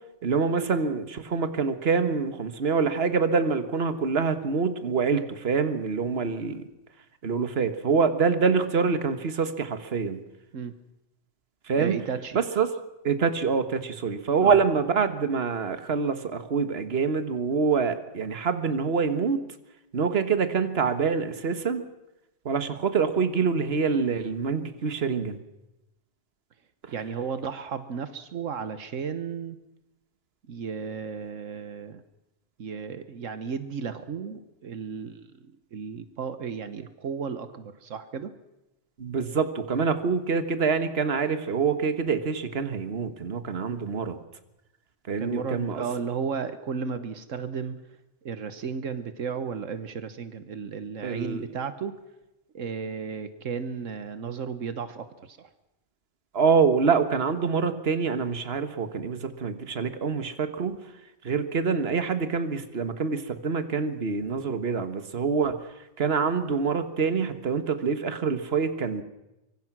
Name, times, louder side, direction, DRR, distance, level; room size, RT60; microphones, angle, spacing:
voice 1, 0.2-6.7 7.2-10.2 11.7-12.0 12.3-12.7 13.0-19.4 19.9-21.8 22.4-25.4 39.0-44.2 45.1-45.8 51.0-51.4 56.3-60.8 61.2-65.6 66.0-69.0, right 5 dB, 55° right, 10 dB, 1.7 m, -26 dB
voice 2, 11.8-12.4 14.4-14.6 26.9-29.6 30.5-32.0 32.6-38.3 43.7-43.8 45.2-47.8 48.2-52.0 52.5-55.5, right 6 dB, 85° right, 11 dB, 1.5 m, -34 dB
24.5 x 23.5 x 6.1 m, 0.95 s
omnidirectional pair, 1.3 m